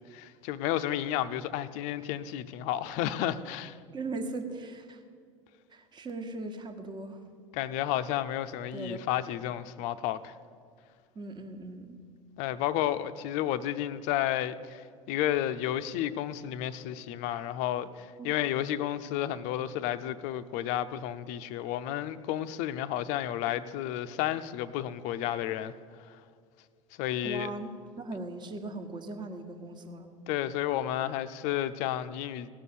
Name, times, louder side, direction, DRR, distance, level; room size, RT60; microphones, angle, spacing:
voice 1, 0.0-3.8 7.5-10.3 12.4-25.7 26.0-26.1 27.0-27.5 30.3-32.5, left 12 dB, 50° left, 12 dB, 0.6 m, -32 dB
voice 2, 3.9-5.0 5.7-7.2 8.7-9.0 11.1-12.0 18.2-18.3 27.2-27.7 28.0-30.1, right 2 dB, 25° right, 5 dB, 1.3 m, -39 dB
17.0 x 6.8 x 7.7 m, 2.2 s
figure-of-eight pair, 70°, 16 cm